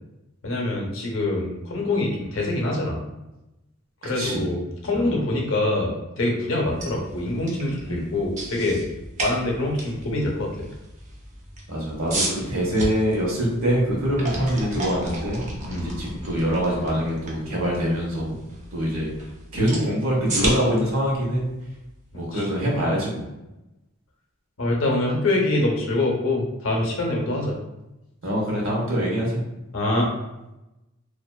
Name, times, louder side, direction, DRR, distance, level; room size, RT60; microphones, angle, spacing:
voice 1, 0.4-3.0 4.0-8.8 9.2-10.7 15.7-15.9 22.1-22.4 24.6-27.6 29.7-30.1, left 2 dB, 70° left, -1 dB, 0.6 m, -25 dB
voice 2, 4.2-4.5 4.9-5.2 7.8-8.1 11.7-15.4 15.7-18.4 18.7-19.1 19.5-21.4 22.1-23.3 28.2-29.4, equal, 80° right, -3 dB, 0.9 m, -24 dB
sound 1, 6.6-22.5, right 1 dB, 35° right, 0.5 m, -35 dB
sound 2, 14.0-19.2, left 1 dB, 10° left, 0.5 m, -39 dB
2.5 x 2.2 x 2.2 m, 0.96 s
head